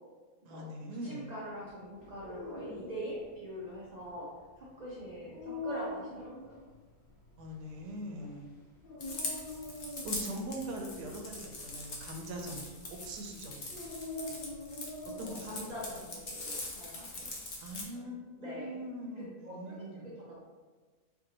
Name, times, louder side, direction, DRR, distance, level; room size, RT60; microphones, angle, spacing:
voice 1, 0.4-1.3 7.4-8.5 10.0-13.6 14.3-14.4 15.2-15.5 16.0-16.1 17.6-20.1, right 1 dB, 90° right, 2 dB, 1.2 m, -42 dB
voice 2, 1.0-4.3 4.6-6.5 15.2-17.4 17.9-18.8 19.4-20.4, equal, 65° right, -7 dB, 0.4 m, -43 dB
Dog, 1.9-15.7, left 2 dB, 90° left, 1.6 m, -45 dB
sound 1, 9.0-17.8, left 2 dB, 60° left, 0.5 m, -42 dB
4.3 x 2.6 x 2.8 m, 1.4 s
omnidirectional pair, 1.7 m